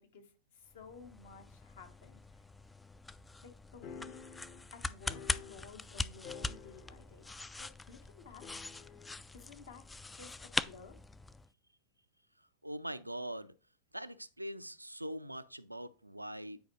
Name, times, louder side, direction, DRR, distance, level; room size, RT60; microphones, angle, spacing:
voice 1, 0.0-2.2 3.4-4.2 4.7-8.4 9.3-9.8 10.1-10.9, left 5 dB, 60° left, 1.3 m, -55 dB
sound 1, 0.7-11.5, left 3 dB, 10° left, 0.3 m, -42 dB
sound 2, 3.8-6.0 6.2-7.2 7.5-7.6 8.4-9.2, left 6 dB, 40° left, 1.0 m, -50 dB
voice 2, 12.6-13.5 13.9-16.6, right 1 dB, 85° right, 0.4 m, -42 dB
9.2 x 4.7 x 3.1 m
figure-of-eight pair, 90°, 0 cm